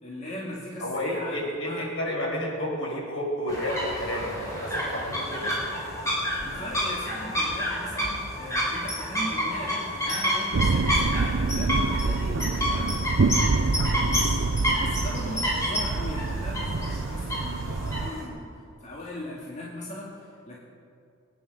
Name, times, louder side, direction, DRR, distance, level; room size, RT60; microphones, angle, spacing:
voice 1, 0.0-1.9 6.4-18.5 18.8-20.6, left 1 dB, 35° left, -5 dB, 2.2 m, -39 dB
voice 2, 0.8-5.5, left 1 dB, 75° left, -3 dB, 5.3 m, -31 dB
sound 1, 3.5-18.2, equal, 15° left, 4.2 m, -29 dB
sound 2, 10.5-18.1, right 3 dB, 70° right, 0.6 m, -26 dB
22.5 x 9.5 x 6.5 m, 2.4 s
head